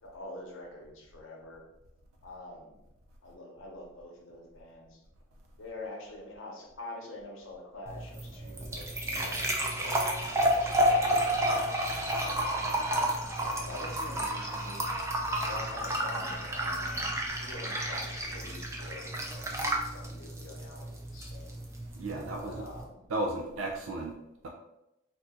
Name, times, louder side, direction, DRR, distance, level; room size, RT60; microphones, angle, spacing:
voice 1, 0.0-1.6 2.2-2.8 3.2-5.0 5.6-12.5 12.9-14.8 15.4-17.1 17.4-21.6 22.4-23.1, left 2 dB, 80° left, -1 dB, 0.8 m, -46 dB
sound 1, 7.9-22.8, right 1 dB, 15° right, 0.3 m, -31 dB
voice 2, 21.9-22.6 23.1-24.1, right 2 dB, 90° right, 1 dB, 0.4 m, -34 dB
2.8 x 2.5 x 3.5 m, 0.87 s
head